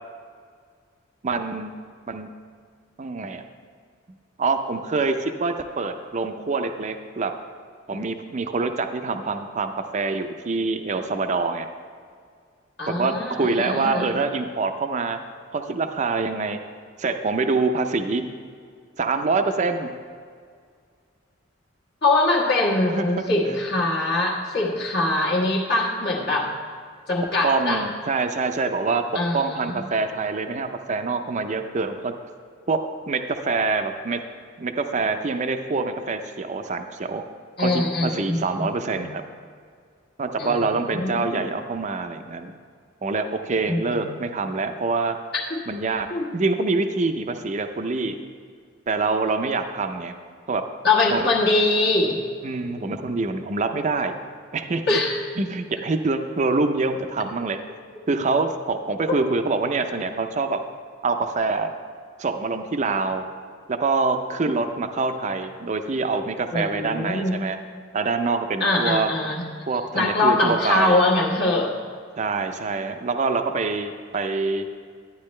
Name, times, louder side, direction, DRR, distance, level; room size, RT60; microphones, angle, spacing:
voice 1, 1.2-1.8 2.1-2.3 3.0-3.4 4.4-7.3 7.9-11.7 12.9-15.2 15.5-16.6 17.0-18.3 19.0-19.9 22.9-23.1 27.4-29.0 29.3-32.1 32.7-34.2 34.6-37.2 37.6-39.2 40.2-42.5 43.0-45.2 45.7-46.1 46.3-48.1 48.9-50.1 50.5-50.7 51.1-51.3 52.4-54.2 54.5-55.0 55.4-57.6 58.1-60.6 61.0-61.7 62.2-63.3 63.7-67.6 67.9-69.1 69.7-71.0 72.2-74.6, right 3 dB, 35° right, 7 dB, 0.5 m, -25 dB
voice 2, 12.8-14.1 22.0-26.5 27.1-27.8 29.1-29.8 37.6-39.0 40.4-41.4 43.7-44.0 46.1-46.3 50.8-52.2 54.9-55.2 66.5-67.4 68.6-69.4 69.9-71.7, left 2 dB, 55° left, -4 dB, 1.4 m, -23 dB
12.0 x 9.6 x 3.2 m, 2.1 s
head